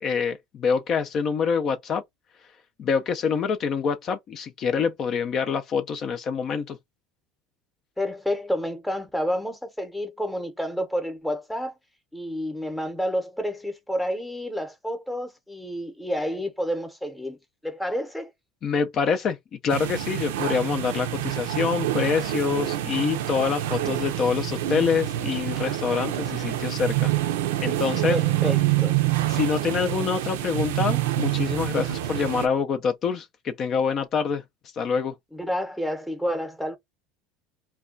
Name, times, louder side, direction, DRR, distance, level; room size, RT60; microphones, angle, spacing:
voice 1, 0.0-2.0 2.8-6.8 18.6-27.1 27.6-28.2 29.3-34.4 34.7-35.2, left 6 dB, 45° left, 0.4 m, -26 dB
voice 2, 8.0-11.7 12.1-17.4 17.6-18.3 28.1-29.0 35.3-36.8, equal, 5° left, 0.8 m, -29 dB
sound 1, 19.7-32.5, right 14 dB, 85° right, 0.4 m, -26 dB
2.2 x 2.2 x 3.7 m
supercardioid pair, 110°, 0 cm